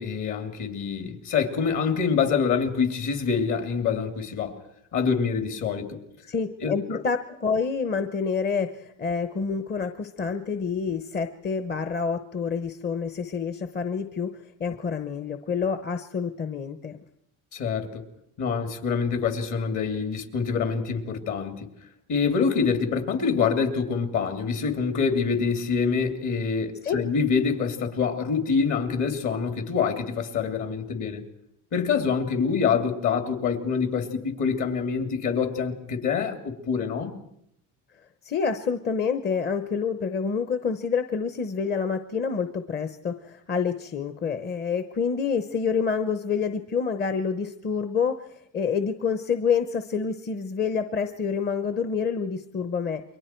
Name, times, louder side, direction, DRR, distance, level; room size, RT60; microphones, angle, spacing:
voice 1, 0.0-4.5 4.9-6.0 6.6-7.0 17.5-18.0 18.4-21.7 22.1-31.2 31.7-37.2, left 6 dB, 60° left, 6 dB, 3.0 m, -26 dB
voice 2, 6.3-14.3 14.6-17.0 26.8-27.0 38.2-53.0, left 6 dB, 30° left, 9 dB, 0.9 m, -27 dB
29.0 x 23.0 x 4.6 m, 0.75 s
cardioid pair, 135°, 33 cm